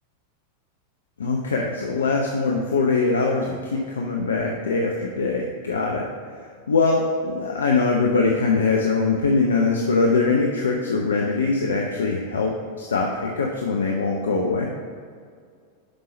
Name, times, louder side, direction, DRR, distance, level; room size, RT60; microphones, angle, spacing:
voice 1, 1.2-6.1 6.7-14.7, left 4 dB, 70° left, 0 dB, 0.7 m, -22 dB
6.9 x 5.5 x 5.3 m, 2.1 s
figure-of-eight pair, 90°, 0 cm